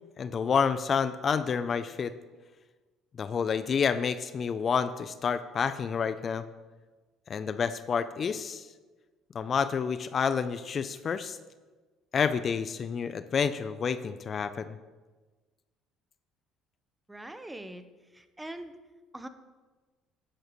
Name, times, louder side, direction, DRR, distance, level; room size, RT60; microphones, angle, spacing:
voice 1, 0.2-2.1 3.2-6.4 7.3-8.7 9.3-11.4 12.1-14.8, left 6 dB, 45° left, 12 dB, 0.5 m, -29 dB
voice 2, 17.1-17.8 18.1-18.8 19.1-19.3, right 1 dB, 10° right, 10 dB, 0.9 m, -42 dB
11.0 x 10.5 x 3.1 m, 1.3 s
hypercardioid pair, 70°, 0 cm